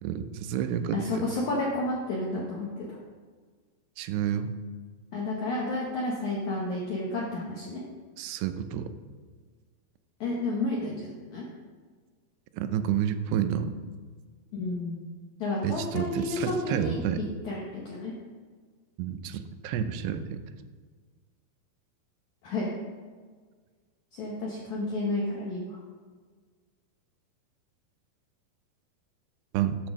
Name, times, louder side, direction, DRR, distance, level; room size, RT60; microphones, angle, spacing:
voice 1, 0.0-1.0 4.0-4.5 8.2-8.9 12.6-13.7 15.6-17.2 19.0-20.4 29.5-29.8, right 9 dB, 85° right, 9 dB, 2.7 m, -29 dB
voice 2, 0.9-3.0 5.1-7.8 10.2-11.5 14.5-15.0 15.4-18.1 22.4-22.7 24.1-25.8, left 2 dB, 75° left, -3 dB, 1.7 m, -31 dB
9.1 x 4.3 x 6.2 m, 1.5 s
omnidirectional pair, 4.7 m